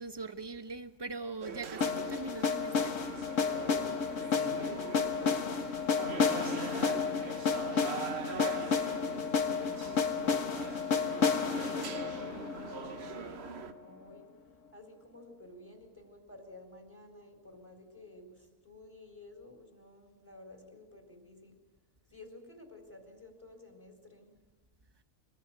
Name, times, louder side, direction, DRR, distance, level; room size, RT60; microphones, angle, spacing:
voice 1, 0.0-2.9, right 3 dB, 20° right, 1.0 m, -41 dB
sound 1, 1.4-13.7, right 7 dB, 50° right, 1.2 m, -43 dB
sound 2, 1.8-13.7, left 5 dB, 60° left, 1.7 m, -31 dB
voice 2, 4.3-7.2 9.8-14.3 14.7-21.6 22.1-24.4, left 2 dB, 15° left, 4.1 m, -54 dB
25.5 x 20.5 x 9.0 m
omnidirectional pair, 1.5 m